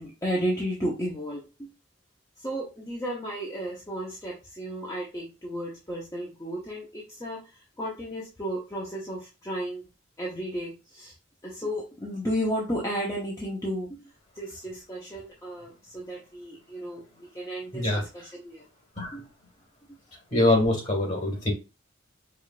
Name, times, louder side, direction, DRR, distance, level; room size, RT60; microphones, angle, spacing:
voice 1, 0.0-1.7 2.4-9.8 10.2-11.1 11.4-14.1 14.3-18.6 19.1-19.2, equal, 15° left, -5 dB, 0.8 m, -33 dB
voice 2, 17.7-18.0 19.0-19.1 20.3-21.5, left 1 dB, 40° left, -1 dB, 1.8 m, -23 dB
4.9 x 2.5 x 2.4 m, 0.29 s
head